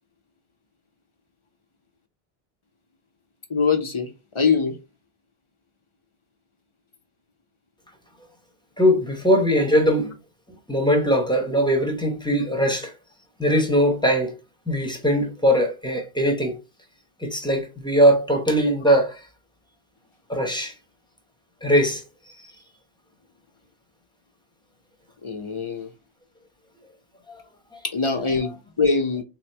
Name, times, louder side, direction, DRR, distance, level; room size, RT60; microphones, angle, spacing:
voice 1, 3.5-4.1 4.3-4.8 25.2-25.9 27.8-29.2, left 4 dB, 35° left, 0.6 m, -23 dB
voice 2, 8.8-10.1 10.7-12.9 13.4-14.4 14.7-16.6 17.2-19.2 20.3-20.7 21.6-22.0, equal, 5° left, 0.8 m, -20 dB
3.5 x 3.0 x 3.3 m
omnidirectional pair, 1.1 m